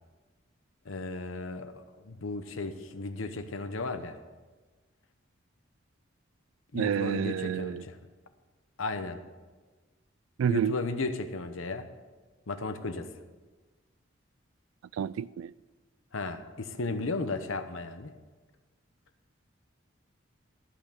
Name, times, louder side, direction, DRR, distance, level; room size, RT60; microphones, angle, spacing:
voice 1, 0.8-4.2 6.7-8.0 8.8-9.2 10.5-11.9 12.5-13.1 16.1-18.1, left 3 dB, 85° left, 0.9 m, -35 dB
voice 2, 6.7-7.8 10.4-10.8 15.0-15.5, right 8 dB, 90° right, 0.3 m, -29 dB
13.0 x 5.9 x 6.7 m
head